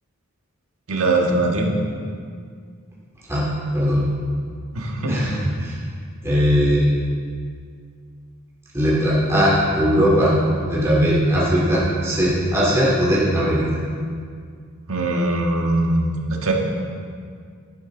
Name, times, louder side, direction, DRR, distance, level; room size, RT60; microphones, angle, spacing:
voice 1, 0.9-1.7 4.7-5.2 14.9-16.5, right 2 dB, 80° right, 0 dB, 1.6 m, -21 dB
voice 2, 3.7-4.0 5.1-5.8 6.2-6.8 8.7-10.3 10.7-13.7, equal, 15° right, -7 dB, 2.5 m, -19 dB
11.5 x 11.0 x 3.9 m, 2.1 s
head